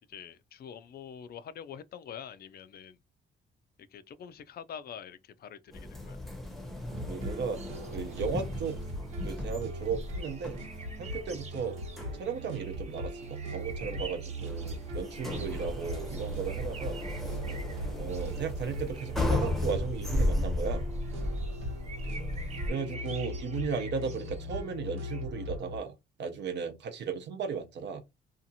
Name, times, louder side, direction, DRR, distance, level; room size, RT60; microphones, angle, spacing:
voice 1, 0.1-3.0 3.9-6.2, left 8 dB, 50° left, 0.4 m, -45 dB
sound 1, 5.7-22.7, left 1 dB, ahead, 0.7 m, -35 dB
sound 2, 6.9-25.8, equal, 90° right, 1.1 m, -39 dB
voice 2, 7.1-7.6 7.9-8.8 9.2-10.6 11.0-11.8 12.1-17.0 17.9-20.9 22.7-25.9 26.2-28.0, right 6 dB, 60° right, 0.7 m, -35 dB
sound 3, 7.5-25.2, right 4 dB, 35° right, 0.9 m, -50 dB
2.7 x 2.4 x 2.7 m
cardioid pair, 90°, 20 cm